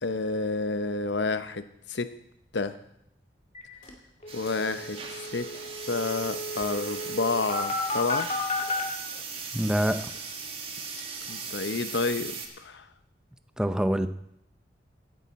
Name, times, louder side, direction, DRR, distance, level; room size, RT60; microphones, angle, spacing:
voice 1, 0.0-2.1 2.5-2.8 4.3-5.5 5.8-8.3 11.3-12.9, left 3 dB, 80° left, 11 dB, 0.8 m, -30 dB
sound 1, 3.5-3.6 3.9-4.0 4.2-8.8, left 2 dB, 40° left, 2.1 m, -33 dB
sound 2, 3.8-3.9 4.2-5.9 6.2-7.1 7.9-10.4 10.7-11.4, left 1 dB, 55° left, 6.4 m, -54 dB
sound 3, 4.3-12.5, right 5 dB, 30° right, 1.5 m, -38 dB
voice 2, 9.5-10.0 13.6-14.1, equal, 5° right, 10 dB, 0.6 m, -25 dB
17.0 x 10.5 x 4.2 m, 0.77 s
head